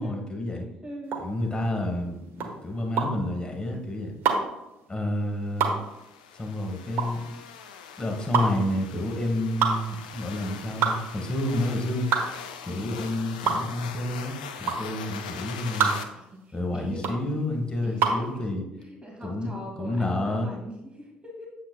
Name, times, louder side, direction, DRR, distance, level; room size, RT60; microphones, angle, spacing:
voice 1, 0.0-0.7 1.2-4.2 4.9-5.7 6.3-7.2 8.0-12.1 12.6-15.9 16.5-18.6 19.2-19.5 19.8-20.5, left 1 dB, 20° left, 2 dB, 1.8 m, -29 dB
voice 2, 0.8-1.2 12.6-12.9 16.1-17.2 17.8-21.5, right 1 dB, 25° right, -1 dB, 2.2 m, -41 dB
sound 1, 1.0-18.3, right 5 dB, 55° right, 1.3 m, -28 dB
sound 2, 5.6-16.0, left 7 dB, 80° left, 0.5 m, -42 dB
8.4 x 8.3 x 2.3 m, 0.93 s
figure-of-eight pair, 50°, 4 cm